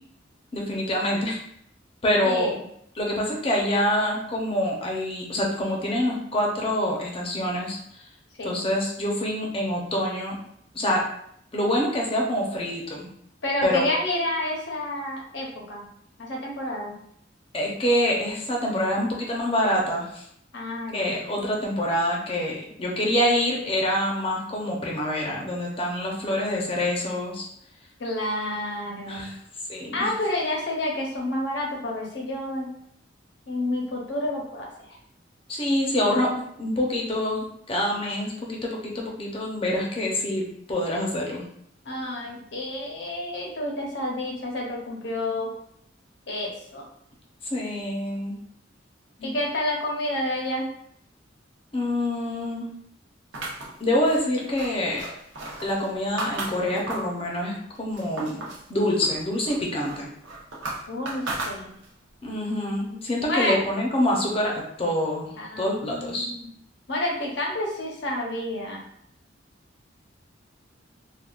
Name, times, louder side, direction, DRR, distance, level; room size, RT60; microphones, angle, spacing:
voice 1, 0.5-1.4 2.0-2.5 2.9-7.8 8.4-10.4 10.7-11.0 11.5-13.1 13.6-13.9 17.5-20.2 20.9-27.5 29.1-29.3 29.7-29.9 35.5-36.3 36.6-41.4 47.4-48.4 49.2-49.3 51.7-52.7 53.8-55.0 55.6-58.4 58.7-60.1 62.2-66.3, left 1 dB, 30° left, -2 dB, 0.7 m, -26 dB
voice 2, 2.2-2.6 8.4-8.6 13.4-15.9 16.2-17.0 20.5-21.2 28.0-29.3 29.9-32.7 33.5-34.9 41.8-45.5 46.3-46.9 49.2-50.7 60.9-61.7 62.6-63.6 65.4-66.5 66.9-68.8, left 1 dB, 65° left, -1 dB, 0.8 m, -29 dB
sound 1, 53.3-57.2 57.6-58.7 59.0-62.0, right 2 dB, 85° right, 0.8 m, -36 dB
3.5 x 2.3 x 2.4 m, 0.70 s
head